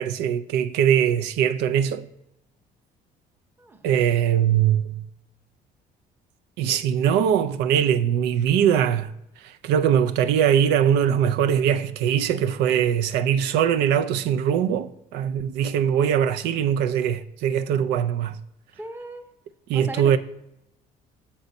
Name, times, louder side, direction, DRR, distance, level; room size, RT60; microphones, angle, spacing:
voice 1, 0.0-2.1 3.8-5.1 6.6-9.1 9.4-18.4 19.7-20.2, right 9 dB, 85° right, 0.4 m, -21 dB
voice 2, 3.6-3.9 18.7-19.2 19.7-20.2, right 2 dB, 10° right, 0.7 m, -37 dB
7.1 x 3.9 x 5.3 m
cardioid pair, 110°, 17 cm